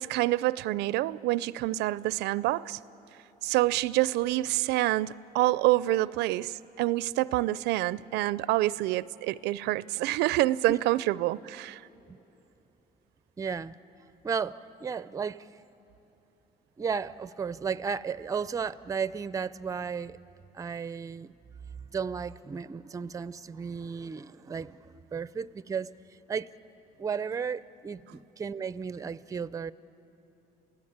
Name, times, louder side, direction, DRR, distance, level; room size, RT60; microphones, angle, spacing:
voice 1, 0.0-2.8 3.4-11.8, right 17 dB, 85° right, 0.4 m, -27 dB
voice 2, 13.4-13.8 14.2-15.5 16.8-20.2 20.5-21.3 21.9-25.9 26.3-26.5 27.0-29.7, right 6 dB, 20° right, 0.4 m, -34 dB
28.5 x 16.0 x 8.7 m
cardioid pair, 110°, 17 cm